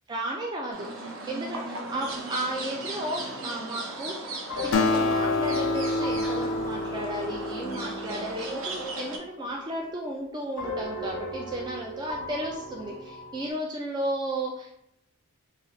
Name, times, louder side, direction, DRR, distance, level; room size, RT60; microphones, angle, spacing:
voice 1, 0.1-4.3 4.6-14.7, right 1 dB, 20° right, -1 dB, 0.3 m, -34 dB
sound 1, 0.7-9.2, right 2 dB, 60° right, 0.7 m, -37 dB
sound 2, 1.9-3.3 4.5-10.2 10.6-13.5, left 4 dB, 80° left, 0.8 m, -37 dB
Acoustic guitar, 4.7-8.4, left 2 dB, 60° left, 0.4 m, -28 dB
3.2 x 2.3 x 3.8 m, 0.75 s
head